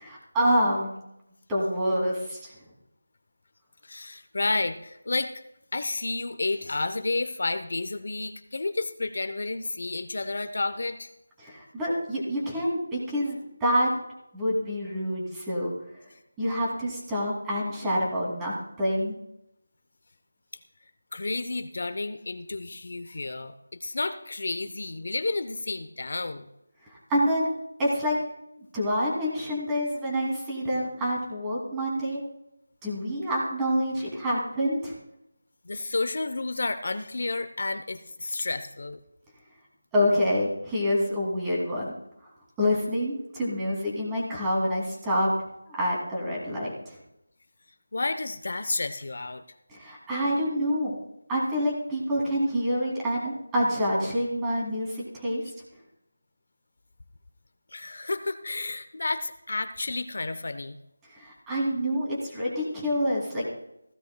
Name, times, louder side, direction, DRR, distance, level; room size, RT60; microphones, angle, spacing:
voice 1, 0.0-0.9 1.5-2.5 11.4-13.9 14.3-15.7 16.4-19.1 26.8-27.5 27.8-28.2 28.7-32.2 32.8-34.9 39.9-41.9 42.6-45.3 45.7-47.0 49.7-50.9 51.3-55.4 61.1-63.4, equal, 10° right, -5 dB, 2.7 m, -27 dB
voice 2, 3.8-5.3 5.7-11.1 21.1-26.5 35.6-39.0 47.9-49.4 57.7-60.8, left 3 dB, 60° left, 10 dB, 0.8 m, -31 dB
17.0 x 16.0 x 2.3 m, 0.83 s
figure-of-eight pair, 170°, 0 cm